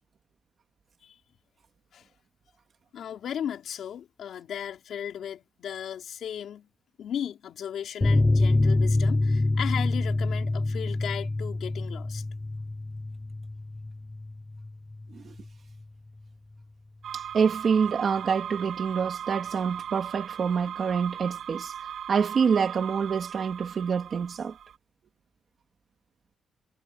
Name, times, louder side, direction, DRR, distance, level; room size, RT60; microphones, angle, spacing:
voice 1, 2.9-6.7 7.0-12.2, left 9 dB, 60° left, 5.0 m, -36 dB
sound 1, 8.0-15.1 15.4-15.5 15.8-15.9, left 2 dB, 15° left, 0.8 m, -26 dB
sound 2, 17.0-24.8, right 9 dB, 60° right, 6.0 m, -38 dB
voice 2, 17.1-21.7 22.1-24.5, right 6 dB, 40° right, 2.8 m, -26 dB
cardioid pair, 160°, 0 cm